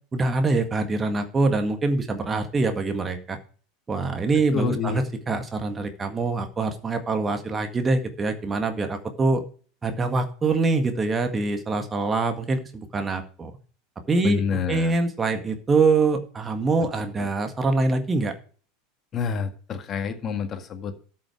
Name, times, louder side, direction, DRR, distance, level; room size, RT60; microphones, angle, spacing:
voice 1, 0.1-3.4 3.9-9.4 9.8-13.5 14.1-14.4 14.7-18.3, right 3 dB, 20° right, 7 dB, 1.8 m, -24 dB
voice 2, 4.5-5.0 14.2-14.9 17.2-17.3 19.1-20.9, left 6 dB, 35° left, 8 dB, 1.8 m, -28 dB
13.5 x 6.4 x 4.8 m, 0.41 s
figure-of-eight pair, 80°, 0 cm